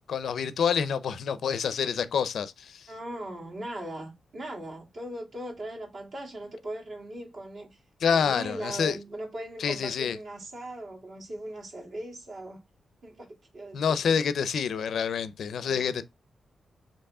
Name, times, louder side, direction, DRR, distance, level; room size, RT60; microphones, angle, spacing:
voice 1, 0.1-2.9 8.0-9.0 9.6-10.2 13.7-16.0, left 7 dB, 75° left, 0.5 m, -27 dB
voice 2, 2.9-7.8 8.1-12.6 13.0-14.2 15.5-15.9, right 1 dB, 55° right, 1.9 m, -39 dB
4.6 x 3.0 x 3.6 m
wide cardioid pair, 160°, 0 cm